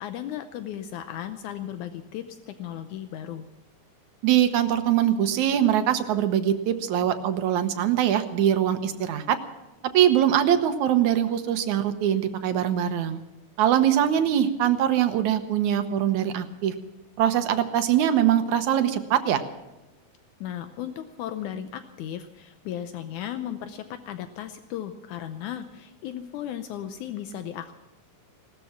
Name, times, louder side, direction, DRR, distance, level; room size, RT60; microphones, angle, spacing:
voice 1, 0.0-3.5 20.4-27.7, left 10 dB, 80° left, 9 dB, 2.1 m, -35 dB
voice 2, 4.2-9.4 9.9-13.2 13.6-16.7 17.2-19.4, right 10 dB, 75° right, 8 dB, 2.3 m, -22 dB
18.5 x 13.0 x 5.9 m, 1.0 s
omnidirectional pair, 3.6 m